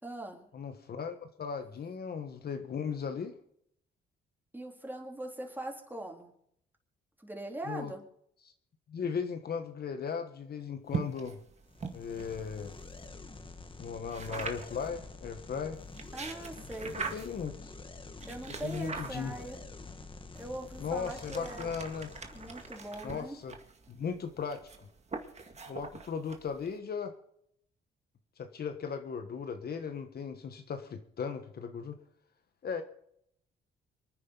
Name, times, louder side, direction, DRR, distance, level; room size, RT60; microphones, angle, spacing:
voice 1, 0.0-0.5 4.5-6.3 7.2-8.0 16.1-17.0 18.2-19.6 20.3-21.7 22.3-23.4, right 1 dB, 10° right, 1 dB, 3.7 m, -41 dB
voice 2, 0.5-3.4 7.6-7.9 8.4-8.5 8.9-11.4 11.9-12.7 13.8-15.8 16.8-17.8 18.5-19.3 20.8-22.1 23.0-23.6 23.9-24.6 25.6-27.1 28.4-32.0 32.6-32.8, left 6 dB, 50° left, 7 dB, 1.4 m, -37 dB
sound 1, 10.9-13.1 14.1-14.9 15.8-17.5 18.2-19.6 20.3-26.8, right 4 dB, 35° right, 2.0 m, -42 dB
sound 2, 11.7-23.1, left 3 dB, 25° left, 1.7 m, -48 dB
25.5 x 9.6 x 4.0 m, 0.71 s
cardioid pair, 90°, 20 cm